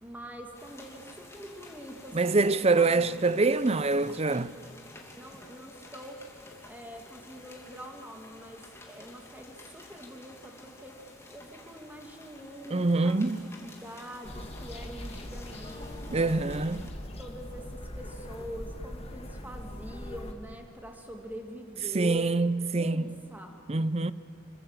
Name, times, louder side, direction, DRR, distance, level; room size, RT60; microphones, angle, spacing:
voice 1, 0.0-4.7 5.2-6.2 6.6-10.9 11.3-13.2 13.6-16.4 16.8-16.9 17.2-22.3 22.7-23.6, equal, 10° right, 2.6 m, -44 dB
sound 1, 0.5-16.9, left 2 dB, 15° left, 3.0 m, -51 dB
voice 2, 2.1-4.5 12.7-13.4 16.1-16.9 21.9-23.0 23.7-24.1, right 3 dB, 30° right, 0.6 m, -25 dB
sound 2, 14.2-20.3, left 1 dB, 30° left, 1.8 m, -41 dB
26.5 x 23.5 x 7.5 m
head